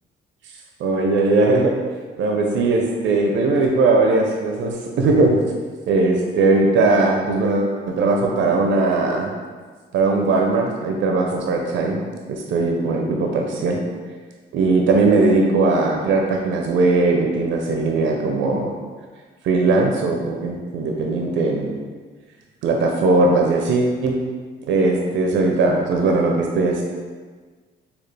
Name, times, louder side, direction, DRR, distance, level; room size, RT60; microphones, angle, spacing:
voice 1, 0.8-1.7 2.2-5.4 5.9-9.3 9.9-12.0 12.3-13.8 14.5-18.7 19.4-21.8 22.6-24.2 24.7-26.8, right 3 dB, 70° right, 1 dB, 0.5 m, -19 dB
4.1 x 2.3 x 3.2 m, 1.5 s
cardioid pair, 90°, 20 cm